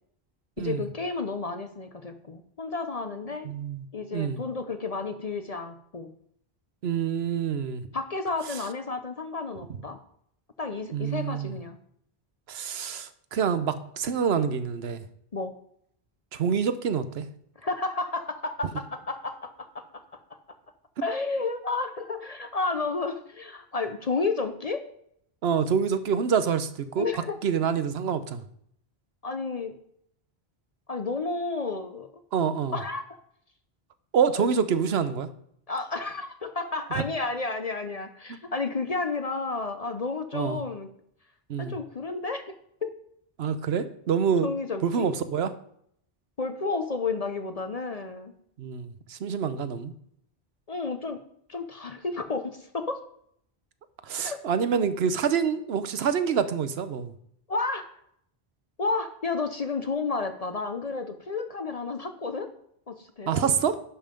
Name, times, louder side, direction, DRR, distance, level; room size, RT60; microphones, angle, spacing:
voice 1, 0.6-3.5 3.9-6.1 7.9-10.0 10.6-11.8 15.3-15.5 17.6-20.6 21.0-24.8 27.0-27.4 29.2-29.7 30.9-32.1 32.7-33.0 34.3-34.5 35.7-40.9 41.6-42.4 42.8-42.9 44.4-45.1 46.4-48.3 50.7-51.2 51.5-53.0 54.2-54.4 57.5-57.9 58.8-62.5 62.9-63.7, left 3 dB, 40° left, 8 dB, 0.8 m, -31 dB
voice 2, 3.4-3.8 4.1-4.4 6.8-7.8 10.9-11.5 12.5-15.0 16.3-17.3 25.4-27.1 27.4-28.4 32.3-32.8 34.1-35.3 36.9-37.0 40.3-40.6 41.5-41.7 43.4-44.5 44.8-45.5 48.6-49.9 54.0-57.1 63.3-63.8, right 7 dB, 80° right, 12 dB, 1.0 m, -26 dB
11.0 x 5.6 x 5.1 m, 0.68 s
omnidirectional pair, 1.1 m